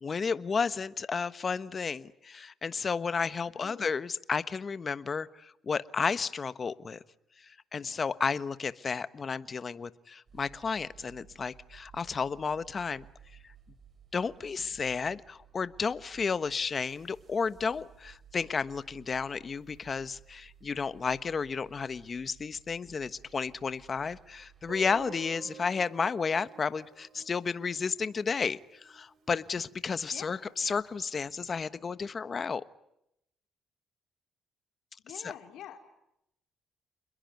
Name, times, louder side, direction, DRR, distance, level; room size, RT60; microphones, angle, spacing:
voice 1, 0.0-7.0 7.5-13.0 14.1-32.6 35.2-35.3, left 5 dB, 40° left, 14 dB, 1.2 m, -32 dB
voice 2, 3.5-3.9 30.1-30.4 35.0-35.8, left 10 dB, 85° left, 4 dB, 4.2 m, -46 dB
sound 1, 10.3-25.1, right 8 dB, 45° right, 6.3 m, -57 dB
Guitar, 24.7-29.6, right 6 dB, 75° right, 4.5 m, -50 dB
29.0 x 21.5 x 9.5 m, 0.80 s
cardioid pair, 90°, 0 cm